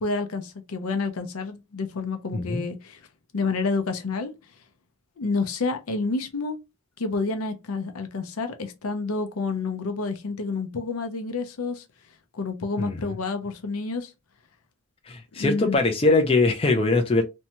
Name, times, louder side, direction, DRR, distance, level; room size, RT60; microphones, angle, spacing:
voice 1, 0.0-3.0 3.3-4.3 5.2-6.6 7.0-11.8 12.3-14.1 15.4-15.8, left 4 dB, 90° left, 0.6 m, -29 dB
voice 2, 2.3-2.6 12.8-13.1 15.1-17.2, left 2 dB, 25° left, 0.4 m, -22 dB
2.6 x 2.2 x 2.8 m
head